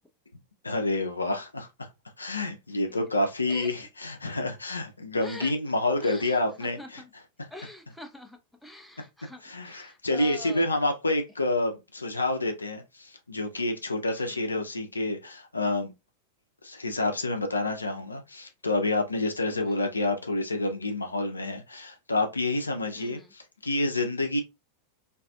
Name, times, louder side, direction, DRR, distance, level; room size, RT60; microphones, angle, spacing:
voice 1, 0.6-1.9 2.2-7.0 7.4-7.5 9.4-15.9 16.6-24.4, left 2 dB, 80° left, 0.5 m, -28 dB
voice 2, 5.2-5.5 6.0-6.9 7.5-10.6 14.1-14.3 19.5-19.8 23.0-23.3, left 1 dB, ahead, 0.4 m, -45 dB
2.6 x 2.4 x 2.2 m
figure-of-eight pair, 90°, 0 cm